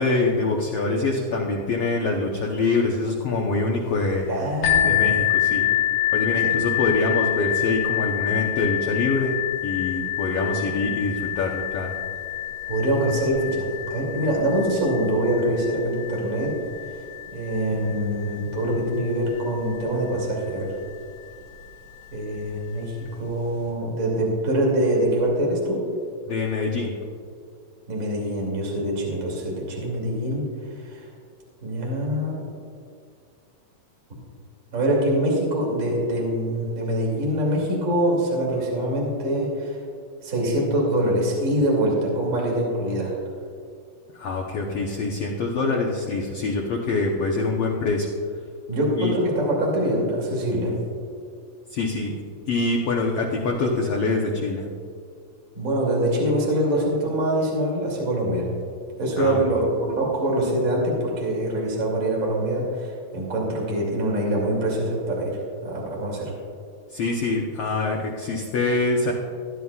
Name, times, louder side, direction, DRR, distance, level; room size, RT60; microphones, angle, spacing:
voice 1, 0.0-4.3 4.8-5.6 6.1-12.0 26.3-26.9 44.1-48.1 49.0-49.1 51.7-52.1 52.5-54.7 59.2-59.4 66.9-69.1, left 3 dB, 85° left, -1 dB, 1.3 m, -25 dB
voice 2, 4.3-5.0 5.5-5.7 6.4-6.6 12.7-16.6 17.3-20.7 22.1-25.9 27.9-30.5 30.8-31.1 31.6-32.4 34.7-39.8 40.2-43.2 48.7-50.8 55.5-58.5 59.0-66.3, right 1 dB, 25° right, -3 dB, 2.5 m, -24 dB
sound 1, 4.6-20.2 20.9-21.0 21.6-21.7, left 12 dB, 60° left, 2.8 m, -27 dB
17.5 x 11.0 x 2.4 m, 2.3 s
omnidirectional pair, 4.0 m